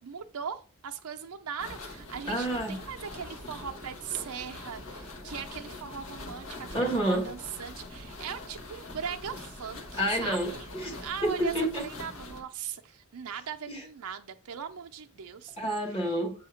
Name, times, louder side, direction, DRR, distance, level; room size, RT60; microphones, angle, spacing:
voice 1, 0.0-10.7 11.0-15.6, right 7 dB, 75° right, 0.5 m, -39 dB
sound 1, 1.6-12.4, left 2 dB, 85° left, 1.5 m, -43 dB
voice 2, 2.3-2.8 6.7-7.3 9.9-11.8 13.7-13.8 15.6-16.3, right 1 dB, 25° left, 1.3 m, -29 dB
7.5 x 2.8 x 5.7 m
head